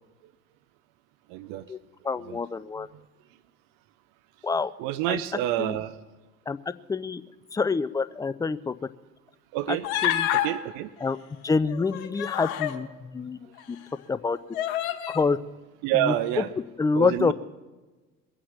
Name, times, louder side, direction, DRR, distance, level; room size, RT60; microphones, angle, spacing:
voice 1, 1.3-1.6 2.3-2.4 4.8-5.9 9.5-9.9 10.4-10.9 15.8-16.5 16.9-17.3, right 13 dB, 55° right, 14 dB, 0.8 m, -27 dB
voice 2, 2.0-2.9 4.4-4.7 5.1-5.2 5.6-5.8 6.5-6.6 6.9-7.2 7.5-8.7 9.7-9.8 10.0-10.3 11.0-11.2 11.4-13.8 14.1-14.4 15.1-15.4 15.9-17.3, left 4 dB, 10° left, 15 dB, 0.4 m, -27 dB
Human voice, 9.8-10.5 11.7-12.8 13.6-13.7 14.5-15.2, left 11 dB, 60° left, 1.5 m, -27 dB
21.5 x 8.7 x 7.3 m, 1.2 s
figure-of-eight pair, 65°, 42 cm